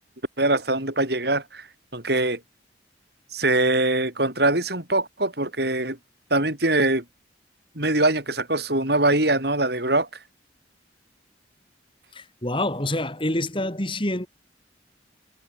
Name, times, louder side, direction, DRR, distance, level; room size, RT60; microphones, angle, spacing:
voice 1, 0.4-1.7 1.9-2.4 3.3-6.0 6.3-7.0 7.7-10.1, right 2 dB, 55° right, 6.7 m, -22 dB
voice 2, 12.1-14.3, left 1 dB, 25° left, 4.8 m, -27 dB
head